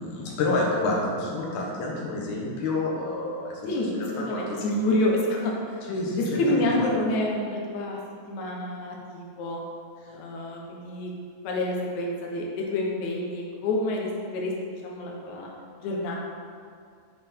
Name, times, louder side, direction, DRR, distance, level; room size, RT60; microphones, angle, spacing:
voice 1, 0.0-3.6 3.9-4.7 5.9-6.9 10.1-10.2, left 2 dB, 60° left, -3 dB, 2.2 m, -29 dB
voice 2, 3.6-5.8 6.1-8.0 8.3-9.6 10.1-11.1 11.4-15.5 15.8-16.2, left 1 dB, 90° left, -2 dB, 1.6 m, -28 dB
8.3 x 6.4 x 4.5 m, 2.3 s
omnidirectional pair, 4.9 m